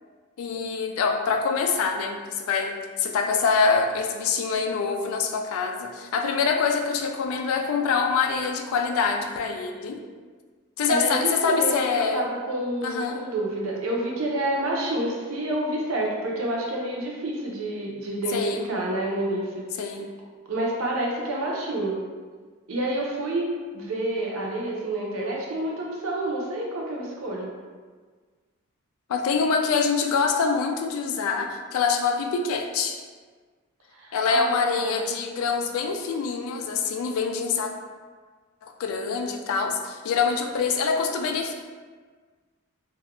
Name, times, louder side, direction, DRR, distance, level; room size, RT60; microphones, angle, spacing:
voice 1, 0.4-10.0 10.8-12.2 12.8-13.3 18.3-18.7 19.8-20.1 29.1-33.0 34.1-37.7 38.6-41.5, left 5 dB, 80° left, 5 dB, 0.3 m, -25 dB
voice 2, 10.9-19.7 20.5-22.0 22.7-23.5 23.7-27.5 33.9-35.0, right 1 dB, 75° right, -2 dB, 0.5 m, -28 dB
2.3 x 2.1 x 2.9 m, 1.5 s
head